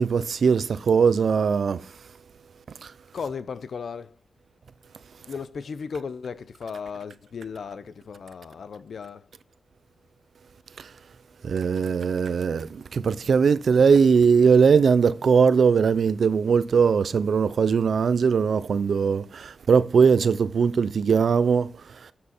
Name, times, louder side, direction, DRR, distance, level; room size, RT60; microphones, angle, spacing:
voice 1, 0.0-1.9 2.8-2.9 10.8-10.9 11.4-22.1, right 6 dB, 75° right, 0.6 m, -20 dB
voice 2, 3.1-4.1 5.3-9.2, left 5 dB, 75° left, 0.7 m, -35 dB
10.0 x 7.5 x 4.4 m
wide cardioid pair, 110°, 0 cm